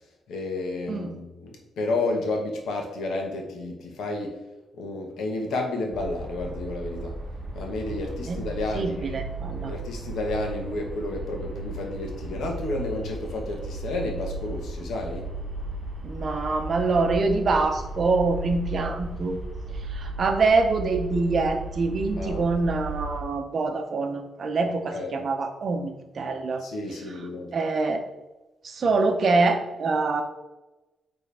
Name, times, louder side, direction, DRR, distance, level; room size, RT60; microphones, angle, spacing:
voice 1, 0.3-4.4 4.7-7.2 7.5-9.2 9.7-15.3 22.1-22.5 24.9-25.2 26.6-27.5, left 2 dB, 90° left, 1 dB, 1.4 m, -31 dB
sound 1, 5.9-23.2, right 2 dB, 25° right, 1.2 m, -35 dB
voice 2, 8.7-9.7 16.0-19.4 19.9-26.6 27.5-28.0 28.6-30.2, right 3 dB, 40° right, 6 dB, 0.7 m, -25 dB
8.9 x 3.5 x 3.5 m, 1.0 s
wide cardioid pair, 165°, 0 cm